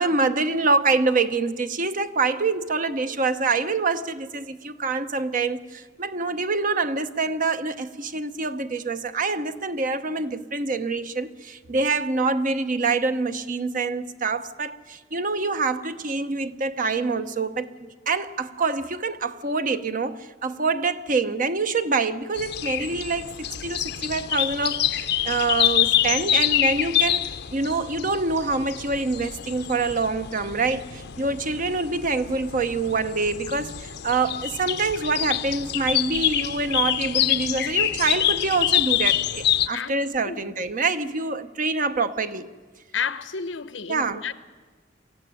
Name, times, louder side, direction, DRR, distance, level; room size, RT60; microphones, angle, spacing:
voice 1, 0.0-27.2 27.5-42.5 43.9-44.2, right 3 dB, 45° right, 0.9 m, -26 dB
sound 1, 22.4-39.7, left 12 dB, 60° left, 0.6 m, -26 dB
voice 2, 42.9-44.3, left 6 dB, 90° left, 0.9 m, -31 dB
23.0 x 14.5 x 10.0 m
head